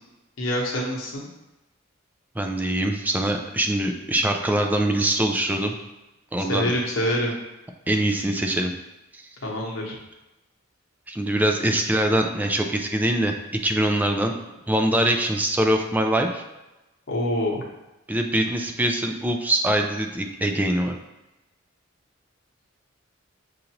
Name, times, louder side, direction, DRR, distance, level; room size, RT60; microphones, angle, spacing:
voice 1, 0.4-1.3 6.5-7.3 9.4-10.0 17.1-17.6, left 1 dB, 80° left, -2 dB, 1.0 m, -25 dB
voice 2, 2.4-5.7 6.3-6.7 7.9-8.7 9.1-9.2 11.1-13.4 13.6-14.3 14.7-16.4 18.1-21.0, right 1 dB, 10° right, 3 dB, 0.3 m, -23 dB
6.3 x 2.6 x 2.9 m, 1.0 s
head